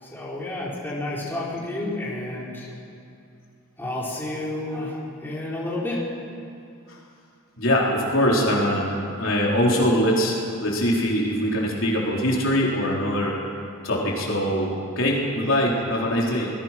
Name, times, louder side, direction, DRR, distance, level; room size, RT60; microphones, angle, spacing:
voice 1, 0.0-2.7 3.8-6.0, left 1 dB, 10° left, -6 dB, 4.4 m, -30 dB
voice 2, 7.6-13.3 13.8-16.5, equal, 65° left, -3 dB, 4.4 m, -22 dB
27.5 x 20.0 x 6.2 m, 2.5 s
head